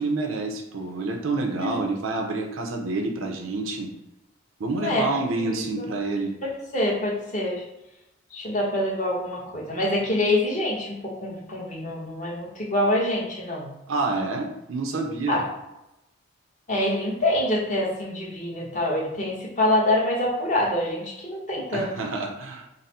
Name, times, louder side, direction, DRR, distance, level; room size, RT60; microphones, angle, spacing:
voice 1, 0.0-3.9 4.6-6.3 13.9-15.4 21.7-22.7, right 3 dB, 85° right, 2 dB, 0.6 m, -28 dB
voice 2, 5.4-5.9 6.4-7.6 8.3-13.7 15.3-15.4 16.7-21.9, left 1 dB, 40° left, -3 dB, 1.0 m, -26 dB
3.9 x 2.0 x 4.1 m, 0.92 s
head